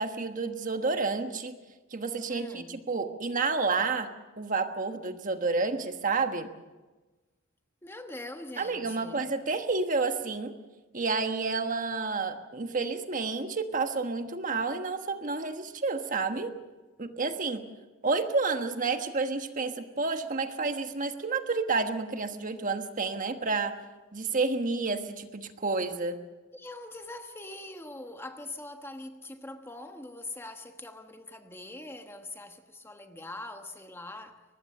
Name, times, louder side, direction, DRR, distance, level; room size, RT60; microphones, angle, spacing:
voice 1, 0.0-1.6 1.9-4.1 4.4-6.5 8.6-10.5 10.9-16.5 17.0-17.6 18.0-23.8 24.1-26.2, right 4 dB, 40° right, 1.3 m, -30 dB
voice 2, 2.3-2.9 7.8-9.4 26.5-34.4, left 2 dB, 10° left, 1.2 m, -43 dB
23.0 x 20.0 x 6.7 m
head